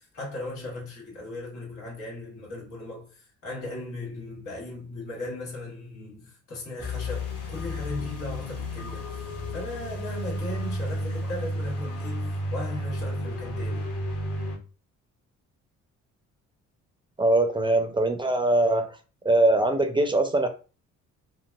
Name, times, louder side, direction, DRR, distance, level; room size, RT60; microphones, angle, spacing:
voice 1, 0.0-13.9, left 2 dB, 90° left, 1.6 m, -37 dB
sound 1, 6.8-14.6, left 1 dB, 50° left, 1.0 m, -32 dB
voice 2, 17.2-18.9 19.2-20.5, right 2 dB, 15° right, 0.4 m, -22 dB
4.0 x 2.0 x 2.3 m
cardioid pair, 90°, 30 cm